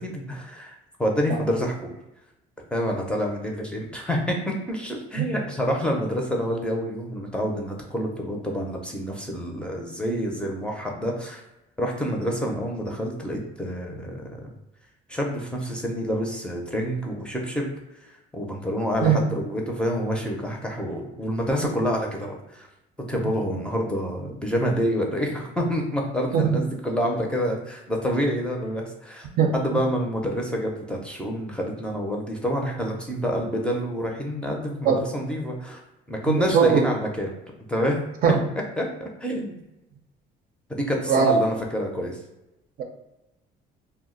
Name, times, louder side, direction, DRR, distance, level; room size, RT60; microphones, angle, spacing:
voice 1, 0.0-1.9 2.7-11.4 11.8-14.5 15.1-17.7 18.3-22.7 23.1-29.3 29.5-35.8 36.1-37.3 37.7-38.0 38.8-39.6 40.7-42.2, equal, 5° left, 0 dB, 0.5 m, -27 dB
voice 2, 29.4-29.8 34.8-35.0 36.2-36.8 38.2-38.4 41.1-41.3, right 7 dB, 60° right, 3 dB, 0.5 m, -20 dB
2.2 x 2.0 x 3.7 m, 0.93 s
cardioid pair, 110°, 17 cm